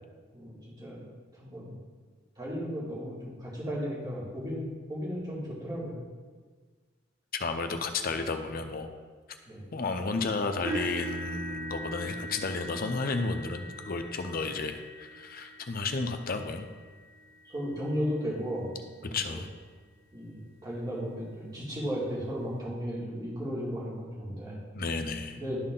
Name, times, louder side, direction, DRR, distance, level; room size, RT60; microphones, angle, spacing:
voice 1, 0.3-1.0 1.4-1.8 2.4-4.6 4.9-6.0 9.5-9.6 17.4-19.4 20.1-24.6 25.3-25.6, equal, 20° right, -7 dB, 2.3 m, -35 dB
voice 2, 7.3-8.9 9.7-16.7 19.0-19.5 24.7-25.4, left 3 dB, 45° left, 7 dB, 0.6 m, -32 dB
sound 1, 10.6-18.7 19.3-19.5 20.0-20.1 21.5-21.6, right 1 dB, 65° right, 2.5 m, -42 dB
11.5 x 4.2 x 3.8 m, 1.5 s
head